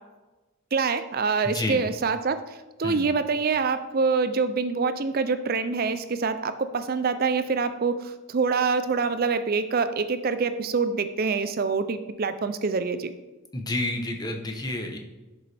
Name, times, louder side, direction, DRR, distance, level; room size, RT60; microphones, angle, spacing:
voice 1, 0.7-2.4 2.8-8.0 8.3-13.1, right 4 dB, 45° right, 11 dB, 0.5 m, -25 dB
voice 2, 1.4-1.8 2.8-3.1 13.5-15.0, left 2 dB, 20° left, 3 dB, 1.0 m, -30 dB
11.0 x 6.8 x 3.4 m, 1.1 s
head